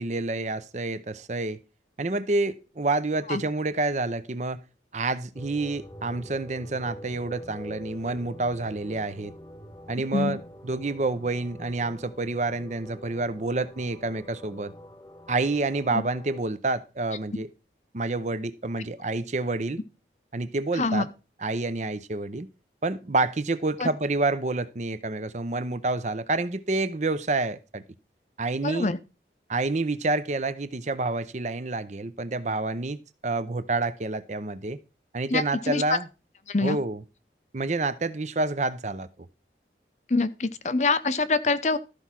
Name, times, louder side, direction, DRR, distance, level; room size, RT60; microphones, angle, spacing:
voice 1, 0.0-1.6 2.0-4.6 4.9-9.3 9.9-10.4 10.7-14.7 15.3-17.5 17.9-19.8 20.3-21.1 21.4-22.5 22.8-27.8 28.4-28.9 29.5-34.8 35.1-36.0 36.6-37.0 37.5-39.1, right 2 dB, 40° right, 0.7 m, -28 dB
sound 1, 5.3-16.4, equal, 20° left, 0.9 m, -45 dB
voice 2, 20.7-21.1 23.8-23.9 28.6-29.0 35.3-35.8 36.5-36.8 40.1-41.8, left 3 dB, 40° left, 0.6 m, -25 dB
13.5 x 4.6 x 5.8 m
head